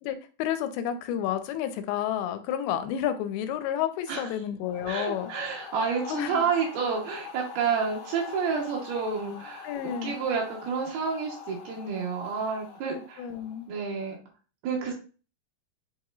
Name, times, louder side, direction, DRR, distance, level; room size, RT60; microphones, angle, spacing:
voice 1, 0.0-5.3 6.1-6.4 9.6-10.2 12.9-13.7, left 10 dB, 85° left, 9 dB, 2.5 m, -31 dB
sound 1, 4.6-13.7, left 6 dB, 65° left, 2.2 m, -44 dB
voice 2, 4.9-13.3 13.7-14.2 14.6-14.9, right 5 dB, 80° right, -2 dB, 3.0 m, -30 dB
7.5 x 3.0 x 2.4 m, 0.36 s
omnidirectional pair, 4.4 m